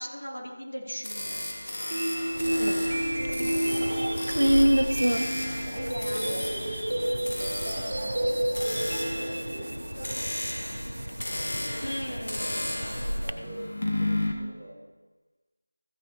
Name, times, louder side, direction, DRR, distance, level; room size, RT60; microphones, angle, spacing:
voice 1, 0.0-1.4 5.7-6.4 11.8-12.6, equal, 85° left, -2 dB, 3.1 m, -38 dB
sound 1, 1.0-14.3, left 1 dB, 50° left, 1.7 m, -34 dB
sound 2, 1.9-9.9, right 1 dB, 40° right, 1.3 m, -30 dB
voice 2, 2.2-3.4 5.6-8.7 9.1-10.5 11.3-13.6 14.0-14.8, right 1 dB, ahead, -20 dB, 1.6 m, -43 dB
sound 3, 2.3-13.3, equal, 80° right, 0.8 m, -30 dB
14.5 x 9.0 x 3.0 m, 1.2 s
figure-of-eight pair, 170°, 0 cm